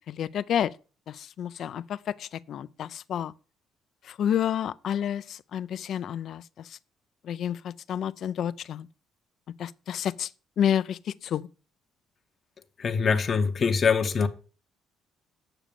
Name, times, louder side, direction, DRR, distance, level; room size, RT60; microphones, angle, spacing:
voice 1, 0.1-0.7 1.1-3.3 4.0-6.8 7.2-8.9 9.6-10.3 10.6-11.5, left 9 dB, 50° left, 0.5 m, -30 dB
voice 2, 12.8-14.3, left 5 dB, 30° left, 0.9 m, -23 dB
8.9 x 6.2 x 6.8 m
cardioid pair, 155°, 0 cm